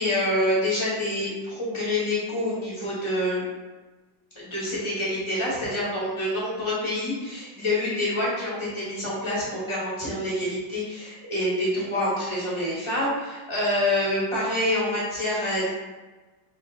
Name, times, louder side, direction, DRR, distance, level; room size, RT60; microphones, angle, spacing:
voice 1, 0.0-3.5 4.3-15.7, left 1 dB, 20° left, -8 dB, 1.2 m, -27 dB
3.3 x 3.0 x 3.3 m, 1.2 s
omnidirectional pair, 2.0 m